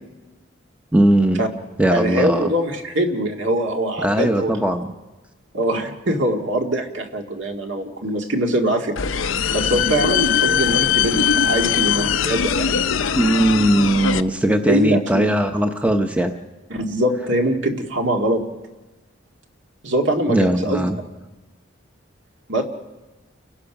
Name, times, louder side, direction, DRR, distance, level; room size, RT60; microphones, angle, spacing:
voice 1, 0.9-1.4 1.8-2.5 4.0-4.9 13.2-16.3 20.3-21.0, right 1 dB, 5° right, 5 dB, 0.8 m, -19 dB
voice 2, 1.9-4.5 5.5-9.0 9.5-12.8 14.7-15.2 16.7-18.4 19.8-20.9 22.5-22.6, right 1 dB, 70° right, 3 dB, 2.0 m, -22 dB
sound 1, 9.0-14.2, left 7 dB, 85° left, 0.7 m, -20 dB
29.5 x 15.5 x 5.9 m, 1.2 s
head